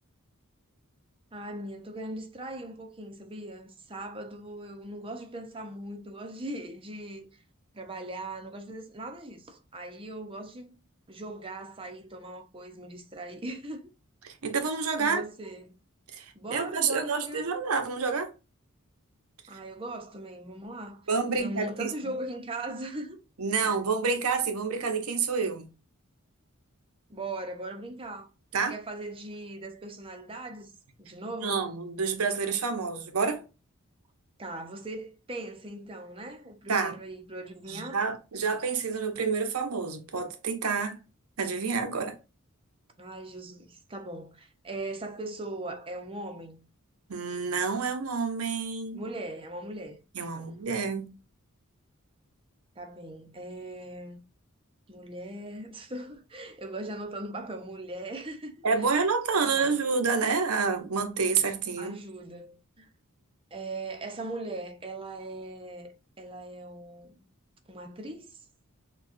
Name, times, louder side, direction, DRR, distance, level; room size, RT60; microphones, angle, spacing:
voice 1, 1.3-7.3 7.7-10.8 11.1-13.9 15.0-15.7 16.4-17.5 19.5-23.2 23.6-23.7 27.1-28.3 28.6-30.7 31.0-31.6 34.4-38.0 43.0-46.6 48.9-50.0 50.3-50.5 52.8-54.2 54.9-58.9 59.4-59.8 61.8-62.9 63.5-65.9 66.2-67.2 67.7-68.4, right 2 dB, 25° right, 0.7 m, -39 dB
voice 2, 14.2-15.2 16.1-18.3 21.1-22.1 23.4-25.7 28.5-28.8 31.4-33.4 36.7-37.0 37.7-41.0 41.4-42.2 47.1-49.0 50.1-51.1 58.6-62.0, right 5 dB, 85° right, 0.8 m, -28 dB
6.1 x 2.3 x 2.6 m
head